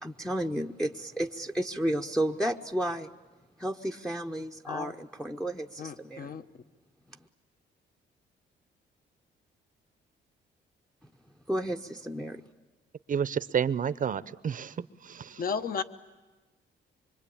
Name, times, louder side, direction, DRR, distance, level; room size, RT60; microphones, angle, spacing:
voice 1, 0.0-3.1 3.6-6.3 7.1-7.2 11.5-12.4, right 1 dB, 5° left, 5 dB, 0.8 m, -32 dB
voice 2, 5.8-6.4 15.4-15.8, left 6 dB, 45° left, 10 dB, 1.1 m, -33 dB
voice 3, 13.1-15.4, right 7 dB, 40° right, 16 dB, 0.8 m, -30 dB
25.0 x 24.0 x 8.6 m, 1.2 s
cardioid pair, 90°, 20 cm